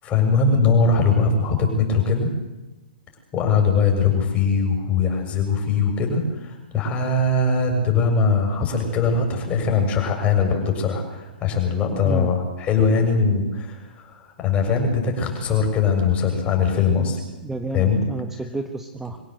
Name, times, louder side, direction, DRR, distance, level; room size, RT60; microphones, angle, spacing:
voice 1, 0.0-2.3 3.3-17.2 17.7-18.0, left 4 dB, 25° left, 2 dB, 7.0 m, -21 dB
voice 2, 11.9-12.3 17.4-19.2, right 2 dB, 5° right, 6 dB, 1.4 m, -30 dB
25.5 x 16.5 x 8.1 m, 1.1 s
hypercardioid pair, 125°, 5 cm